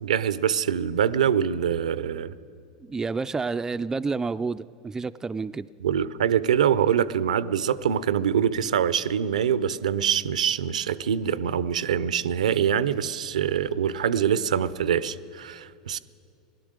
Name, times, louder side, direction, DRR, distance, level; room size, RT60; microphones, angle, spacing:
voice 1, 0.0-2.3 5.8-16.0, right 8 dB, 85° right, 16 dB, 0.5 m, -24 dB
voice 2, 2.8-5.7, right 4 dB, 15° right, 12 dB, 0.3 m, -29 dB
18.0 x 11.5 x 6.6 m, 2.3 s
hypercardioid pair, 100°, 4 cm